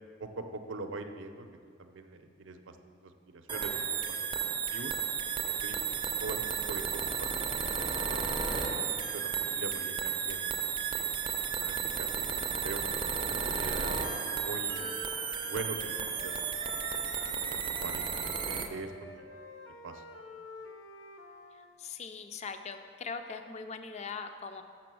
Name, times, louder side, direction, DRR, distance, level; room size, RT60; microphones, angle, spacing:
voice 1, 0.2-1.5 1.8-2.8 3.0-4.3 4.7-4.9 5.4-5.8 6.2-10.5 10.8-11.1 11.5-13.0 13.5-14.0 14.4-15.0 15.4-19.3 19.8-20.0, right 3 dB, 80° right, 7 dB, 0.6 m, -43 dB
sound 1, 3.5-18.7, right 6 dB, 25° right, 0.4 m, -33 dB
Wind instrument woodwind instrument, 13.7-17.4 17.7-21.7, left 3 dB, 80° left, 0.7 m, -48 dB
voice 2, 21.8-24.6, left 5 dB, 35° left, 8 dB, 0.4 m, -41 dB
6.7 x 6.0 x 6.1 m, 2.1 s
head